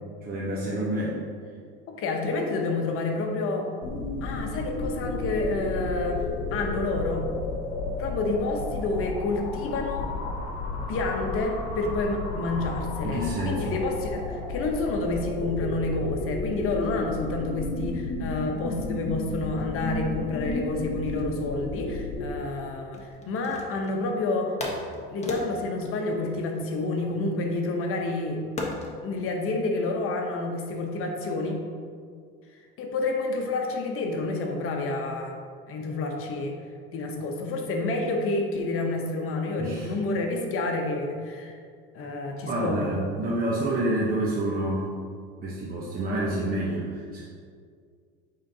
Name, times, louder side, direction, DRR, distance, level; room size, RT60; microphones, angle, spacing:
voice 1, 0.2-1.2 13.0-13.7 39.6-39.9 42.0-42.1 42.5-44.9 45.4-47.2, right 1 dB, 30° right, -5 dB, 0.9 m, -28 dB
voice 2, 1.9-3.7 4.2-7.3 7.9-10.1 10.9-24.6 25.1-28.4 29.0-31.6 32.8-35.4 35.7-36.6 36.9-41.6 41.9-43.0, left 2 dB, 50° left, 2 dB, 1.0 m, -29 dB
sound 1, 3.8-22.4, left 3 dB, 80° left, 1.0 m, -32 dB
sound 2, 22.9-24.0 24.6-27.1 28.6-29.0, left 3 dB, 25° left, 1.1 m, -36 dB
8.7 x 3.9 x 2.8 m, 2.1 s
supercardioid pair, 100°, 29 cm